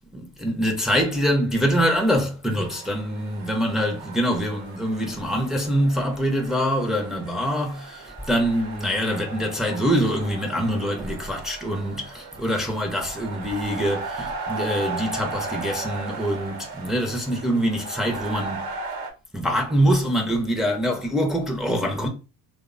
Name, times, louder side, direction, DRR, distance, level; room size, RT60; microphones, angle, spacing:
voice 1, 0.1-18.7 19.3-22.1, equal, ahead, 0.5 m, -24 dB
sound 1, 2.6-19.1, right 3 dB, 80° right, 0.7 m, -36 dB
2.9 x 2.0 x 2.5 m
supercardioid pair, 95°, 37 cm